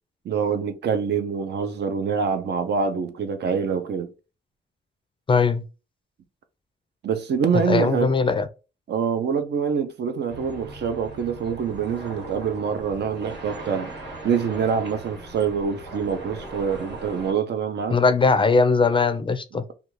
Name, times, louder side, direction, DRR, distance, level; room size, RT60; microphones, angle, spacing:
voice 1, 0.2-4.1 7.0-8.1 8.9-13.9 14.2-18.0, right 6 dB, 70° right, 0.5 m, -25 dB
voice 2, 5.3-5.6 7.7-8.5 17.9-19.6, left 4 dB, 30° left, 0.4 m, -20 dB
sound 1, 10.3-17.3, right 2 dB, 85° right, 1.2 m, -39 dB
2.5 x 2.4 x 3.0 m
cardioid pair, 90°, 18 cm